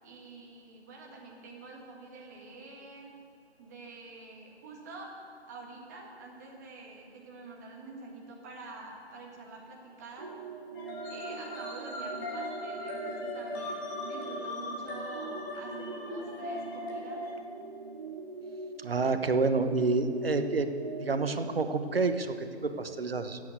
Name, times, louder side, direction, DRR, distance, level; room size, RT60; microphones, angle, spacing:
voice 1, 0.0-3.1 3.6-5.1 5.5-10.3 11.1-17.2, right 3 dB, 15° right, -1 dB, 1.6 m, -47 dB
sound 1, 10.2-22.1, right 3 dB, 30° right, 0.9 m, -42 dB
sound 2, 10.7-17.3, left 2 dB, 20° left, 2.1 m, -39 dB
voice 2, 18.8-20.7 21.0-23.4, right 3 dB, 60° right, 9 dB, 1.2 m, -28 dB
15.5 x 8.6 x 8.0 m, 2.5 s
figure-of-eight pair, 155°, 34 cm